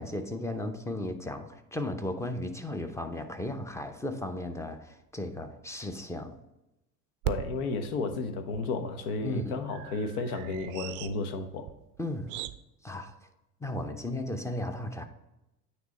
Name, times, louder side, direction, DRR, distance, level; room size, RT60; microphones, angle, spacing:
voice 1, 0.0-6.3 9.2-9.6 12.0-12.3 12.8-13.1 13.6-15.0, left 1 dB, 5° left, 8 dB, 0.6 m, -35 dB
voice 2, 7.2-11.7, left 3 dB, 65° left, 8 dB, 1.1 m, -33 dB
sound 1, 7.2-12.6, right 14 dB, 40° right, 0.4 m, -40 dB
9.3 x 3.2 x 4.1 m, 0.90 s
hypercardioid pair, 70°, 49 cm